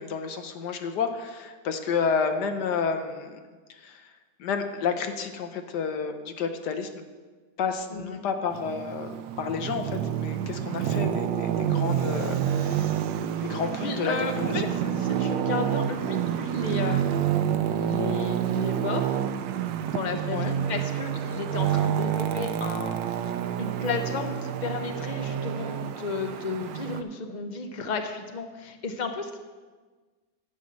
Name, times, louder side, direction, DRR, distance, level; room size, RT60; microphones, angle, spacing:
voice 1, 0.0-3.4 3.7-4.0 4.4-6.9 7.6-9.1 9.4-13.0 13.5-14.7 20.3-20.5, left 5 dB, 70° left, 7 dB, 1.4 m, -30 dB
voice 2, 7.9-8.2 13.8-19.1 19.9-29.4, left 4 dB, 40° left, 6 dB, 0.6 m, -33 dB
Traffic noise roadway noise, 8.5-27.0, right 9 dB, 85° right, 1.3 m, -28 dB
10.5 x 5.6 x 7.7 m, 1.4 s
omnidirectional pair, 1.9 m